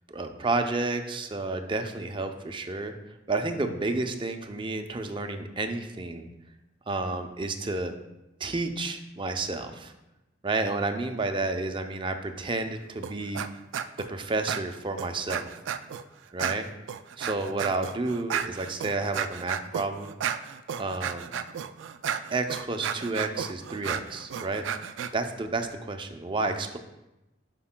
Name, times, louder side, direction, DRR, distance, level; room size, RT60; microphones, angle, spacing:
voice 1, 0.1-2.9 3.3-6.3 6.9-7.9 8.4-9.9 10.4-13.4 14.1-15.5 16.3-16.7 17.2-20.2 20.8-21.3 22.3-24.7 25.1-26.8, right 3 dB, 25° right, 6 dB, 0.5 m, -30 dB
sound 1, 13.0-13.5 13.7-14.1 14.5-16.0 16.4-25.1, right 8 dB, 80° right, 0.3 m, -33 dB
11.0 x 5.2 x 2.2 m, 0.96 s
head